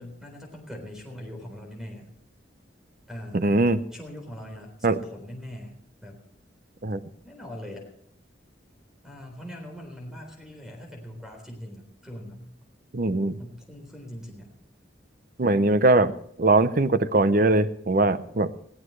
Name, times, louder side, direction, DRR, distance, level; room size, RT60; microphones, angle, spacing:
voice 1, 0.0-2.1 3.1-3.5 3.9-5.7 6.0-6.2 7.2-7.9 9.0-12.5 13.4-14.5, equal, 5° right, 2 dB, 3.8 m, -41 dB
voice 2, 3.3-3.8 4.8-5.0 6.8-7.0 12.9-13.4 15.4-16.1 16.4-18.5, right 2 dB, 45° right, 13 dB, 0.7 m, -21 dB
21.0 x 15.5 x 3.2 m, 0.68 s
head